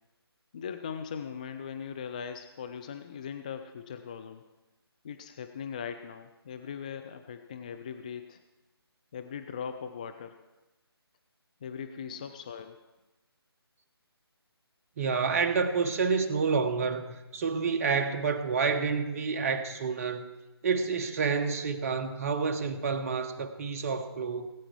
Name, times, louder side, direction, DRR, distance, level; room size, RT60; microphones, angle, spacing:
voice 1, 0.5-4.4 5.0-8.4 9.1-10.4 11.6-12.8, left 7 dB, 20° left, 0.3 m, -40 dB
voice 2, 15.0-20.3 20.6-24.5, right 5 dB, 35° right, 0.9 m, -29 dB
18.5 x 8.8 x 4.6 m
figure-of-eight pair, 150°, 13 cm